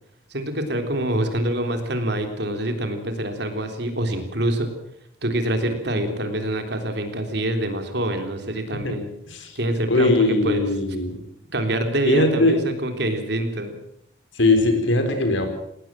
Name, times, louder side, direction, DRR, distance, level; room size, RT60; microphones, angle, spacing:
voice 1, 0.3-4.7 5.2-9.1 9.6-10.7 11.5-13.8, right 1 dB, 60° right, 6 dB, 3.6 m, -25 dB
voice 2, 9.9-11.2 12.0-12.6 14.3-15.5, left 2 dB, 75° left, 7 dB, 4.3 m, -20 dB
20.0 x 18.5 x 7.6 m, 0.77 s
head